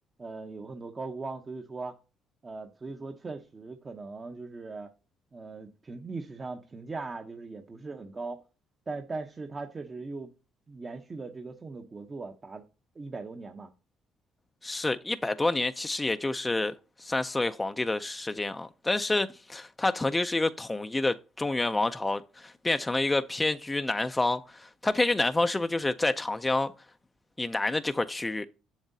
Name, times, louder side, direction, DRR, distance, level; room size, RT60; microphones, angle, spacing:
voice 1, 0.2-2.0 2.4-4.9 5.3-8.4 8.9-10.3 10.7-12.6 12.9-13.7, right 3 dB, 35° right, 0.8 m, -39 dB
voice 2, 14.6-26.7 27.4-28.4, left 2 dB, 20° left, 0.4 m, -28 dB
7.3 x 7.0 x 2.7 m
supercardioid pair, 70°, 0 cm